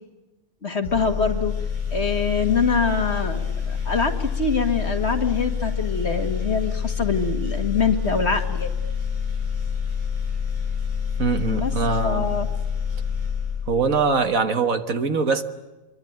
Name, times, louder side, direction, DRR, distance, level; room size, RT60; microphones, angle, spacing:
voice 1, 0.6-1.5 1.9-8.7 11.5-11.7 12.0-12.5, left 5 dB, 40° left, 2.2 m, -24 dB
sound 1, 0.8-14.2, left 6 dB, 25° right, 5.7 m, -27 dB
voice 2, 11.2-12.3 13.7-15.4, right 4 dB, 60° right, 1.8 m, -22 dB
25.5 x 23.5 x 8.8 m
omnidirectional pair, 1.7 m